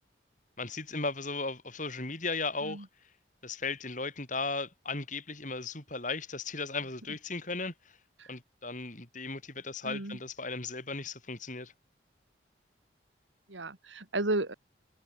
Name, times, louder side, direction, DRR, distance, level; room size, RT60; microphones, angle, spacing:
voice 1, 0.6-2.9 3.4-7.7 8.3-11.7, left 3 dB, 45° left, 6.9 m, -36 dB
voice 2, 9.8-10.2 13.5-14.5, right 2 dB, 90° right, 2.7 m, -33 dB
head